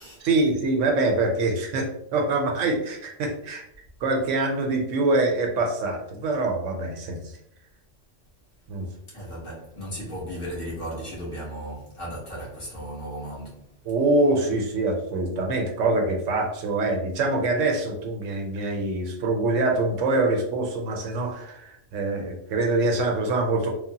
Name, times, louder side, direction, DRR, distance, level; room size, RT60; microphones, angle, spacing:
voice 1, 0.2-3.6 4.0-7.3 8.7-8.9 13.9-23.7, right 2 dB, 85° right, 1.0 m, -24 dB
voice 2, 9.1-13.7, equal, 50° left, 1.3 m, -36 dB
3.2 x 2.1 x 2.8 m
omnidirectional pair, 1.3 m